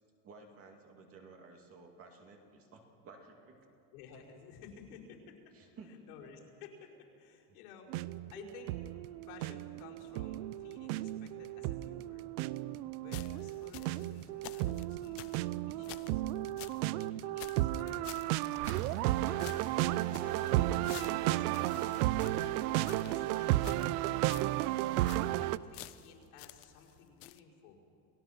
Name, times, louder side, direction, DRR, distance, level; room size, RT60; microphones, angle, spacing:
voice 1, 0.2-3.6 5.5-6.1, right 4 dB, 30° right, 2 dB, 2.5 m, -54 dB
voice 2, 3.9-5.5 5.9-7.9 8.3-8.7 9.3-12.3 12.8-15.3 15.7-16.2 17.0-18.4 19.2-19.5 20.1-21.9 22.7-24.3 25.4-27.9, left 6 dB, 75° left, -4 dB, 5.2 m, -55 dB
sound 1, 7.9-25.6, right 15 dB, 80° right, 0.7 m, -33 dB
sound 2, 13.1-16.8 17.1-17.2 17.4-19.1 19.4-23.2 23.6-24.0 24.3-24.6 24.9-25.4 25.7-26.9 27.2-27.4, left 16 dB, 35° left, 0.4 m, -51 dB
29.5 x 17.5 x 5.9 m, 2.9 s
cardioid pair, 160°, 45 cm